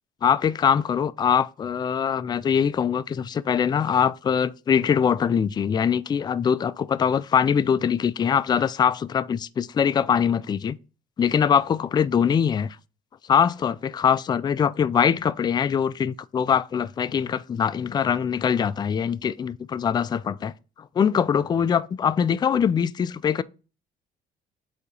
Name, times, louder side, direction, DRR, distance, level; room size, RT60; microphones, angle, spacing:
voice 1, 0.2-10.8 11.2-12.8 13.3-20.5 21.0-23.4, left 7 dB, 25° left, 0.3 m, -23 dB
8.3 x 2.8 x 5.3 m
cardioid pair, 110°, 17 cm